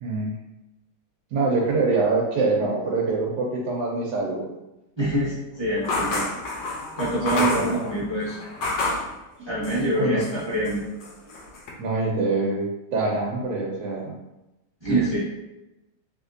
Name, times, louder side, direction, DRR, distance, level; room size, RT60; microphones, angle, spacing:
voice 1, 0.0-0.3 1.3-4.5 7.3-7.8 9.9-10.2 11.8-14.1, right 3 dB, 80° right, -3 dB, 1.2 m, -25 dB
voice 2, 5.0-6.2 7.0-8.4 9.5-10.8 14.8-15.2, right 1 dB, 20° right, -10 dB, 0.8 m, -25 dB
sound 1, 5.8-9.1 9.6-10.4 10.6-11.7, left 2 dB, 90° left, 1.3 m, -29 dB
3.4 x 3.0 x 2.5 m, 0.95 s
omnidirectional pair, 1.8 m